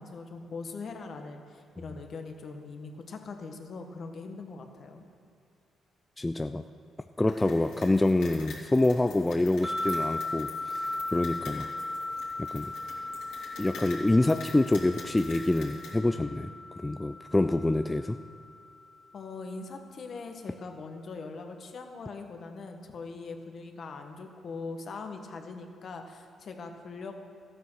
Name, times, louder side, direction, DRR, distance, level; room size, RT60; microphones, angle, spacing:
voice 1, 0.0-5.1 19.1-27.2, left 4 dB, 50° left, 4 dB, 1.5 m, -41 dB
voice 2, 6.2-6.6 7.2-11.7 12.4-12.7 13.6-16.5 16.8-18.2, left 2 dB, 15° left, 8 dB, 0.4 m, -26 dB
sound 1, 7.3-15.9, left 4 dB, 80° left, 3.0 m, -47 dB
sound 2, 9.6-18.9, left 2 dB, 5° right, 2.0 m, -37 dB
13.5 x 9.4 x 6.4 m, 2.4 s
cardioid pair, 90°, 0 cm